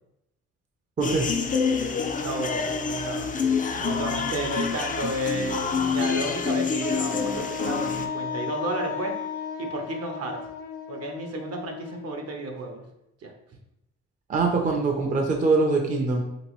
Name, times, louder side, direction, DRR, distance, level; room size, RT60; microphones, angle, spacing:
sound 1, 1.0-8.1, left 5 dB, 25° left, 0.4 m, -27 dB
voice 1, 2.2-3.3 3.7-9.2 9.6-10.4 10.9-12.8 13.2-13.3 14.7-14.8, right 2 dB, 55° right, 3 dB, 0.8 m, -32 dB
Wind instrument woodwind instrument, 6.8-12.6, left 7 dB, 80° left, 0.6 m, -35 dB
voice 2, 14.3-16.2, right 3 dB, 25° right, 1 dB, 0.5 m, -23 dB
3.3 x 3.0 x 3.0 m, 0.84 s
cardioid pair, 90°, 30 cm